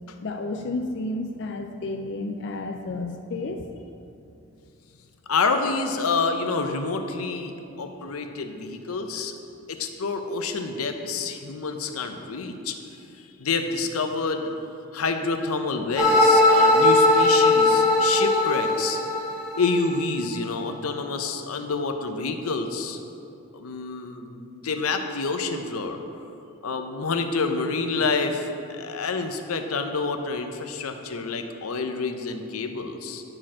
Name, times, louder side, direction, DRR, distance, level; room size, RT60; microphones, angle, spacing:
voice 1, 0.2-3.7 7.5-7.6, left 2 dB, 55° left, 4 dB, 0.4 m, -31 dB
voice 2, 5.3-9.3 9.7-12.8 13.2-14.5 14.9-19.0 19.6-23.0 23.5-26.0 26.6-33.2, left 4 dB, 90° left, 6 dB, 0.7 m, -28 dB
sound 1, 16.0-20.0, left 2 dB, ahead, 1.6 m, -19 dB
9.8 x 4.3 x 6.1 m, 2.7 s
head